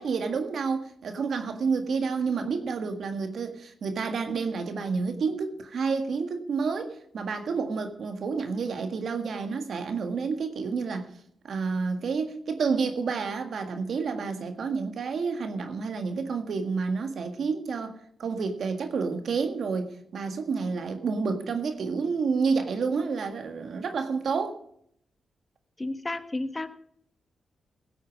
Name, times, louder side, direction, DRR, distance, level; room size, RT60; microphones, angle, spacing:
voice 1, 0.0-11.1 11.4-24.6, right 5 dB, 70° right, 1.7 m, -29 dB
voice 2, 25.8-26.8, left 2 dB, 25° left, 1.3 m, -32 dB
16.5 x 8.3 x 5.0 m
supercardioid pair, 50°, 0 cm